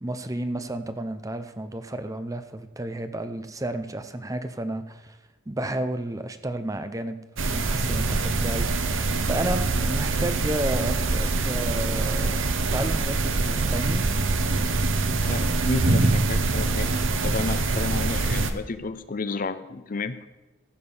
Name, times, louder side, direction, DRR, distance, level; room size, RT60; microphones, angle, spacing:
voice 1, 0.0-5.2 5.5-14.1, right 1 dB, 15° right, 10 dB, 0.7 m, -32 dB
sound 1, 7.4-18.5, right 3 dB, 75° right, 0.9 m, -24 dB
voice 2, 15.2-16.9 17.2-20.2, left 3 dB, 45° left, 13 dB, 0.6 m, -31 dB
14.5 x 5.3 x 7.0 m, 1.1 s
head